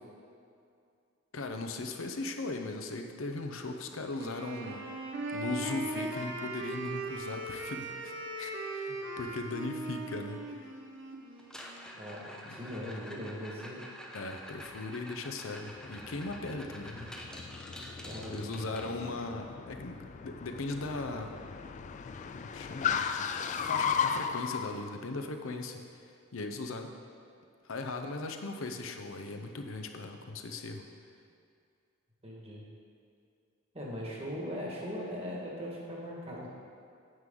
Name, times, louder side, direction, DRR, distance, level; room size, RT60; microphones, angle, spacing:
voice 1, 1.3-4.9 5.3-10.7 12.5-12.6 14.1-17.1 18.3-21.4 22.3-25.8 26.3-26.9 27.6-30.9, left 2 dB, 70° left, 5 dB, 0.7 m, -38 dB
Wind instrument woodwind instrument, 4.1-12.0, right 2 dB, 60° right, 1.0 m, -39 dB
sound 1, 11.4-19.4 21.6-21.7 22.0-22.3 22.7-22.8 23.4-23.5 25.4-25.5, equal, 5° left, 0.6 m, -48 dB
voice 2, 11.9-13.8 18.0-18.8 32.2-32.6 33.7-36.5, equal, 30° right, -4 dB, 1.7 m, -40 dB
Car, 15.8-24.7, left 7 dB, 35° left, 0.3 m, -36 dB
9.3 x 7.7 x 3.8 m, 2.4 s
head